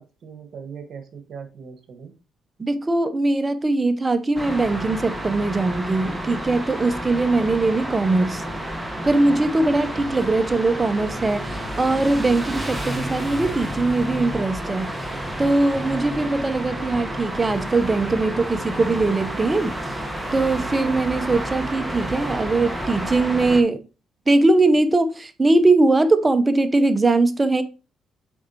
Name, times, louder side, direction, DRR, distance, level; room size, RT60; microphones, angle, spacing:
voice 1, 0.0-2.1, right 6 dB, 60° right, 1.5 m, -39 dB
voice 2, 2.6-8.4 9.0-14.9 15.4-19.7 20.3-23.8 24.3-27.6, right 2 dB, 25° right, 0.8 m, -21 dB
sound 1, 4.3-23.6, right 1 dB, 5° right, 1.3 m, -30 dB
7.1 x 4.9 x 2.9 m
cardioid pair, 90°, 0 cm